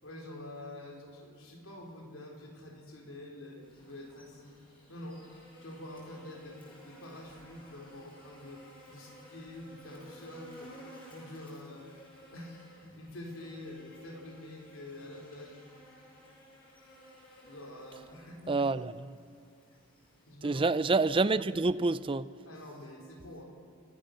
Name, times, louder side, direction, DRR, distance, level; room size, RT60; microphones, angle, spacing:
voice 1, 0.0-4.6 4.9-5.3 5.6-8.6 8.9-10.8 11.1-12.0 12.3-15.6 17.4-18.6 20.3-20.6 22.5-23.4, left 1 dB, 75° left, 4.0 m, -46 dB
Buzz, 3.6-20.3, equal, 25° left, 7.4 m, -55 dB
voice 2, 18.5-19.2 20.4-22.3, right 3 dB, 25° right, 0.5 m, -28 dB
29.0 x 15.5 x 6.6 m
head